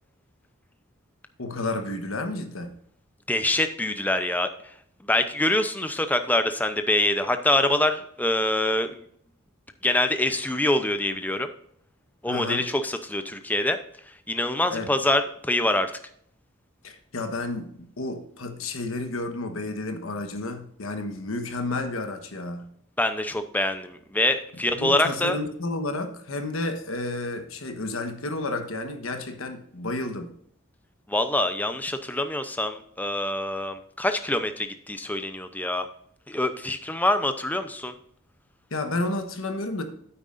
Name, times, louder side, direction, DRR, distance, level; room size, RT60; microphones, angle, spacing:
voice 1, 1.4-2.8 12.3-12.7 14.7-14.9 16.8-22.7 24.8-30.3 38.7-39.8, left 2 dB, 80° left, 6 dB, 1.3 m, -31 dB
voice 2, 3.3-4.5 5.1-8.9 9.8-11.5 12.2-13.8 14.3-15.9 23.0-25.4 31.1-35.9 36.3-37.9, left 1 dB, 10° left, 9 dB, 0.6 m, -25 dB
9.5 x 8.6 x 2.6 m, 0.66 s
head